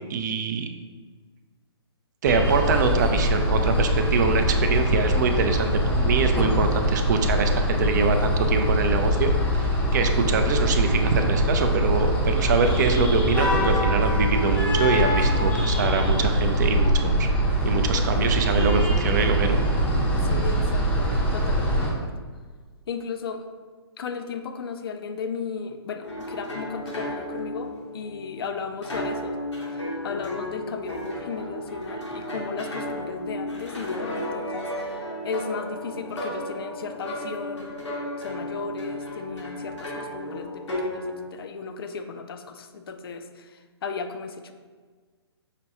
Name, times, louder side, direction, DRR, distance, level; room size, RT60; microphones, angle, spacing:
voice 1, 0.1-0.7 2.2-17.3 17.6-19.6, right 5 dB, 40° right, 6 dB, 0.4 m, -24 dB
sound 1, 2.3-21.9, equal, 10° left, 0.6 m, -23 dB
voice 2, 20.2-22.1 22.9-23.5 24.0-29.4 29.7-37.7 38.2-41.1 41.3-44.5, left 5 dB, 55° left, 7 dB, 0.4 m, -35 dB
sound 2, 26.0-41.3, left 1 dB, 90° left, 0.9 m, -34 dB
5.7 x 2.2 x 2.8 m, 1.5 s
figure-of-eight pair, 135°, 14 cm